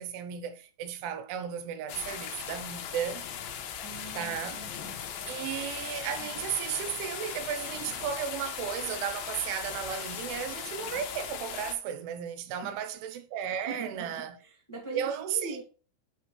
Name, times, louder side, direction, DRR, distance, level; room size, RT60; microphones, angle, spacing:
voice 1, 0.0-3.3 4.1-4.6 5.3-14.4 14.9-15.6, right 9 dB, 80° right, 3.2 m, -34 dB
sound 1, 1.9-11.7, left 8 dB, 70° left, 2.3 m, -38 dB
voice 2, 3.8-5.0 12.6-12.8 13.7-15.6, right 3 dB, 10° left, 0.9 m, -42 dB
9.3 x 6.2 x 3.1 m
omnidirectional pair, 5.6 m